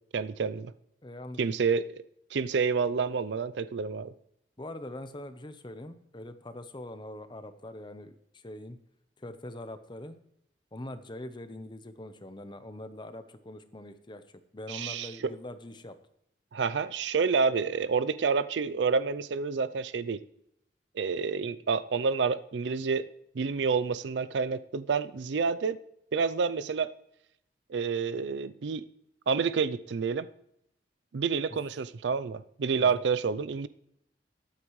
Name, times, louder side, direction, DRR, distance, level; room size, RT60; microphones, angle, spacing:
voice 1, 0.1-0.7 1.4-2.0 2.3-4.1 14.7-15.3 16.5-20.2 21.0-23.0 23.3-25.8 26.1-26.9 27.7-28.8 29.3-30.3 31.1-33.7, right 5 dB, 80° right, 15 dB, 0.5 m, -28 dB
voice 2, 1.0-1.5 4.6-8.8 9.2-10.2 10.7-14.2 14.5-16.0 31.5-31.6 32.8-33.0, left 1 dB, 25° left, 10 dB, 0.8 m, -43 dB
21.0 x 8.8 x 3.2 m, 0.76 s
head